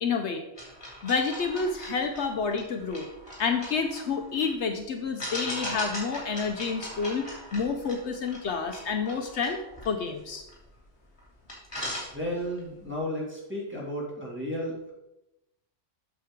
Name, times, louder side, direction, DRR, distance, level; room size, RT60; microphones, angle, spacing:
voice 1, 0.0-0.4 1.0-3.1 3.4-7.3 7.5-9.6 9.8-10.4, left 5 dB, 70° left, 5 dB, 1.0 m, -29 dB
sound 1, 0.5-4.5 5.2-10.8 11.2-11.3 11.5-12.6, equal, 20° left, 3.0 m, -39 dB
voice 2, 12.1-14.9, equal, 10° right, -5 dB, 2.3 m, -33 dB
8.4 x 6.6 x 3.7 m, 0.89 s
omnidirectional pair, 1.3 m